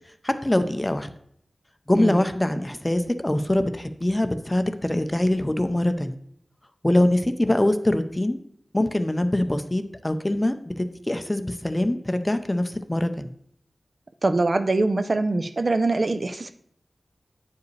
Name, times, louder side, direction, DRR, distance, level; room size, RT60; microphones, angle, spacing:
voice 1, 0.2-1.1 1.9-6.2 6.8-8.4 8.7-13.3, left 1 dB, 20° left, 9 dB, 0.5 m, -23 dB
voice 2, 14.2-16.5, right 2 dB, 50° right, 9 dB, 0.4 m, -23 dB
9.3 x 4.8 x 3.2 m, 0.67 s
wide cardioid pair, 80°, 0 cm